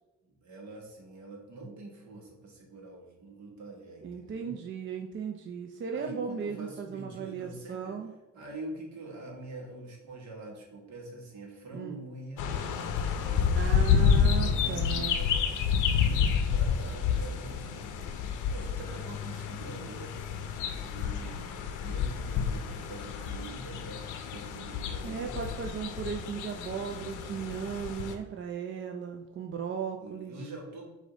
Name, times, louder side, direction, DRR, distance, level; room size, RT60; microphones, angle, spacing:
voice 1, 0.2-4.6 5.9-8.0 8.3-12.7 13.2-15.4 15.9-17.9 18.5-20.1 20.9-25.6 30.0-30.9, right 2 dB, 65° right, 0 dB, 1.3 m, -44 dB
voice 2, 4.0-8.1 11.7-12.0 13.5-15.2 25.0-30.5, right 6 dB, 40° right, 4 dB, 0.4 m, -36 dB
sound 1, 12.4-28.1, left 7 dB, 90° left, 0.6 m, -29 dB
5.0 x 2.6 x 3.8 m, 1.1 s
cardioid pair, 90°, 30 cm